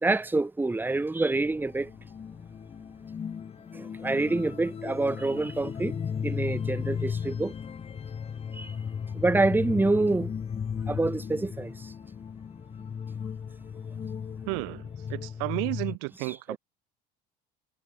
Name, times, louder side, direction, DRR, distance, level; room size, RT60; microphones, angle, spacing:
voice 1, 0.0-1.9 3.7-6.0 6.2-7.5 8.5-8.8 9.1-10.3 10.9-11.9 16.3-16.6, right 2 dB, 10° right, 1.9 m, -27 dB
sound 1, 1.3-16.0, left 7 dB, 30° left, 2.4 m, -36 dB
voice 2, 14.5-16.6, right 40 dB or more, 85° right, 2.8 m, -32 dB
cardioid pair, 125°, 21 cm